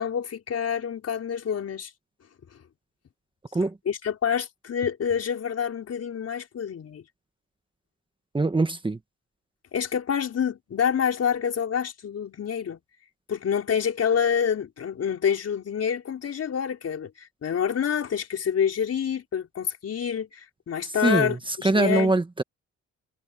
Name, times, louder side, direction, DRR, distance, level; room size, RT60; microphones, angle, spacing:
voice 1, 0.0-1.9 3.8-7.0 9.7-12.8 13.3-22.1, left 7 dB, 55° left, 4.6 m, -27 dB
voice 2, 8.3-9.0 21.0-22.4, right 2 dB, 15° right, 1.4 m, -23 dB
cardioid pair, 90°, 30 cm